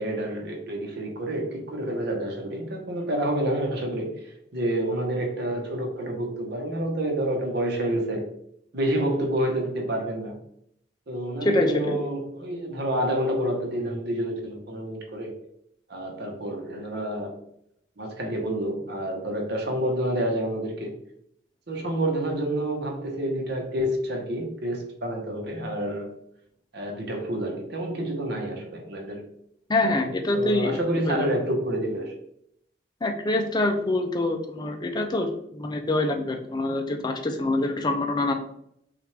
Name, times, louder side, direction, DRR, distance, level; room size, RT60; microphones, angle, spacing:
voice 1, 0.0-8.2 8.7-10.4 11.1-15.4 15.9-17.4 18.0-20.9 21.7-26.1 26.7-29.2 29.8-32.1, right 1 dB, 60° right, 1 dB, 1.1 m, -28 dB
voice 2, 11.4-12.0 29.7-30.7 31.1-31.3 33.0-38.3, left 2 dB, 25° left, 4 dB, 0.4 m, -25 dB
5.9 x 2.5 x 3.3 m, 0.73 s
head